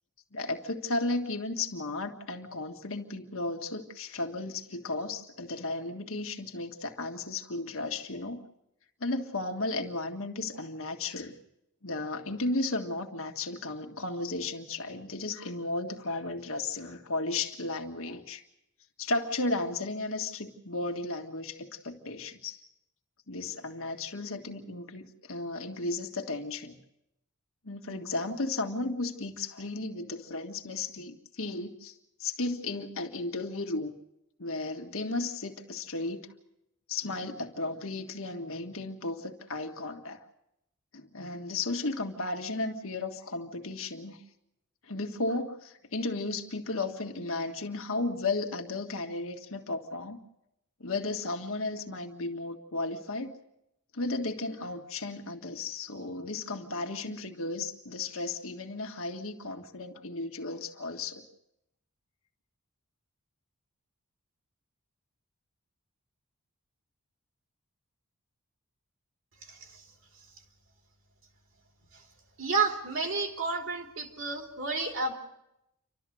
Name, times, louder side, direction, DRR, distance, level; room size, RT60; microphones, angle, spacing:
voice 1, 0.3-8.4 9.0-11.3 11.8-18.4 19.0-22.6 23.3-26.8 27.6-33.9 34.4-36.3 36.9-40.2 40.9-44.2 44.8-50.2 50.8-53.3 53.9-61.2, left 2 dB, 65° left, 4 dB, 1.8 m, -34 dB
voice 2, 69.4-69.8 71.9-72.0 72.4-75.1, right 4 dB, 60° right, 2 dB, 3.1 m, -31 dB
29.0 x 13.0 x 7.8 m, 0.84 s
head